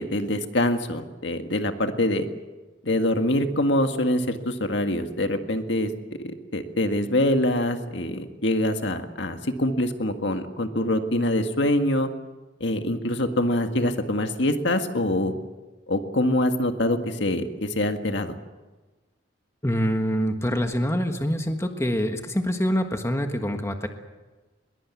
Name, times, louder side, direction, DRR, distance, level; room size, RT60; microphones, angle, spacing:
voice 1, 0.0-2.2 2.8-5.9 6.2-12.1 12.6-15.3 15.9-18.3, left 1 dB, 65° left, 6 dB, 1.8 m, -24 dB
voice 2, 19.6-23.9, equal, 15° left, 5 dB, 1.5 m, -25 dB
22.0 x 21.5 x 8.4 m, 1.2 s
head